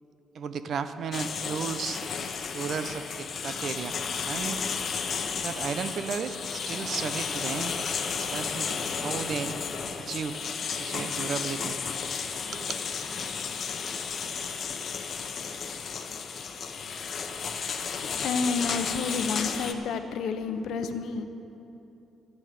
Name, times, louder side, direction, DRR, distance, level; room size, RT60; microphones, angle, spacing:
voice 1, 0.3-2.0 2.5-4.0 4.2-4.6 5.4-7.7 8.2-9.6 10.0-10.4 10.7-12.1 12.5-12.9, right 6 dB, 60° right, 11 dB, 0.8 m, -34 dB
sound 1, 1.1-19.7, left 6 dB, 55° left, 1.0 m, -33 dB
voice 2, 18.0-21.3, left 5 dB, 75° left, 9 dB, 0.8 m, -30 dB
14.5 x 9.9 x 6.7 m, 3.0 s
cardioid pair, 90°, 0 cm